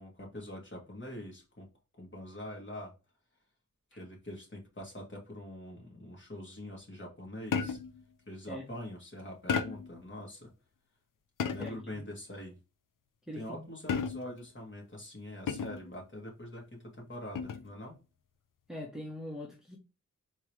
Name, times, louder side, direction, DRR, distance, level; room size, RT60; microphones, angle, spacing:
voice 1, 0.0-1.7 1.9-2.9 4.0-7.8 8.3-10.5 11.5-12.6 13.4-18.0, left 1 dB, 40° left, 2.4 m, -44 dB
sound 1, 7.5-8.0 9.5-10.0 11.4-11.9 13.9-14.5 15.5-15.9 17.4-17.7, left 6 dB, 90° left, 0.6 m, -33 dB
voice 2, 11.6-12.0 13.3-13.7 18.7-19.8, left 1 dB, ahead, 1.2 m, -42 dB
4.4 x 3.2 x 3.4 m
wide cardioid pair, 75°, 31 cm